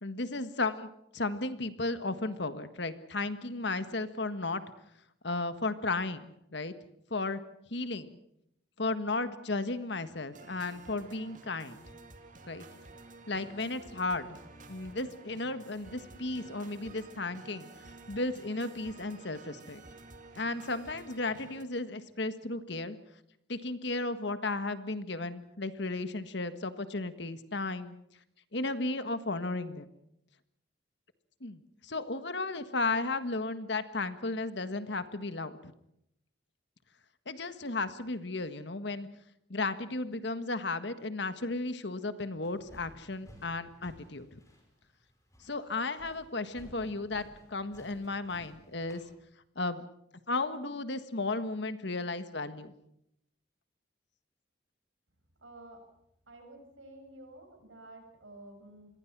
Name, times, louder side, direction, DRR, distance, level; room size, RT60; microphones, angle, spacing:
voice 1, 0.0-4.6 5.2-6.7 7.1-7.4 7.7-8.1 8.8-11.8 12.5-12.6 13.3-14.3 14.7-17.7 18.1-19.8 20.4-23.0 23.5-27.9 28.5-29.9 31.4-35.7 37.2-39.1 39.5-44.4 45.4-49.0 49.5-49.8 50.3-52.7, left 3 dB, 65° left, 11 dB, 1.6 m, -34 dB
sound 1, 10.3-21.6, right 3 dB, 40° right, 2.5 m, -51 dB
sound 2, 42.4-49.1, equal, 15° left, 5.3 m, -56 dB
voice 2, 55.4-55.8 56.3-58.9, right 1 dB, 85° right, 4 dB, 7.9 m, -51 dB
27.0 x 21.5 x 6.1 m, 0.78 s
head